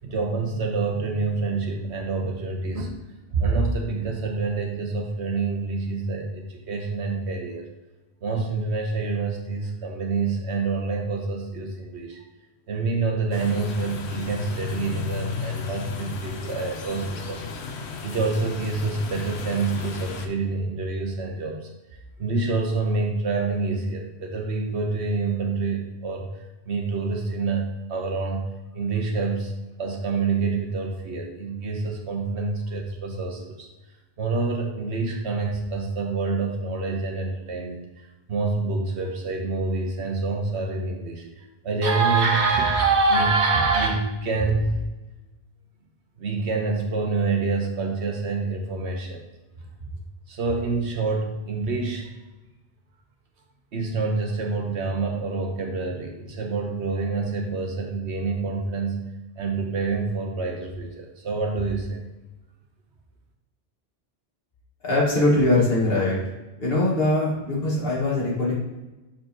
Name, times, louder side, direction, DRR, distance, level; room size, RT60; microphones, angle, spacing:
voice 1, 0.0-3.0 3.3-7.6 8.2-12.2 12.7-17.4 18.0-21.7 22.2-26.3 26.6-29.5 29.8-33.7 34.2-44.8 46.2-49.2 50.3-52.1 53.7-62.0, right 3 dB, 90° right, 2 dB, 1.3 m, -26 dB
sound 1, 13.3-20.3, left 5 dB, 85° left, 1.0 m, -34 dB
voice 2, 64.8-66.2 66.6-68.5, left 2 dB, 65° left, -5 dB, 2.2 m, -21 dB
7.2 x 4.5 x 3.0 m, 1.1 s
omnidirectional pair, 1.1 m